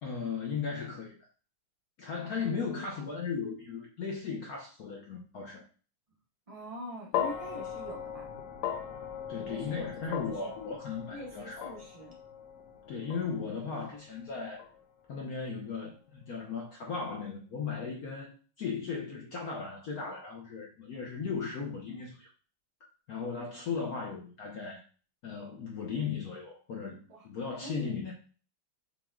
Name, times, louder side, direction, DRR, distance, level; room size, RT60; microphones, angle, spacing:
voice 1, 0.0-1.2 2.0-5.6 9.3-11.7 12.9-14.6 15.1-22.3 23.1-24.8 25.2-28.1, left 5 dB, 70° left, 0 dB, 0.8 m, -37 dB
voice 2, 6.5-8.3 9.4-10.5 11.1-12.1 27.1-27.3 27.6-28.1, right 1 dB, 50° right, -2 dB, 0.4 m, -44 dB
sound 1, 7.1-15.5, left 9 dB, 90° left, 1.5 m, -39 dB
6.0 x 2.2 x 3.6 m, 0.37 s
omnidirectional pair, 2.4 m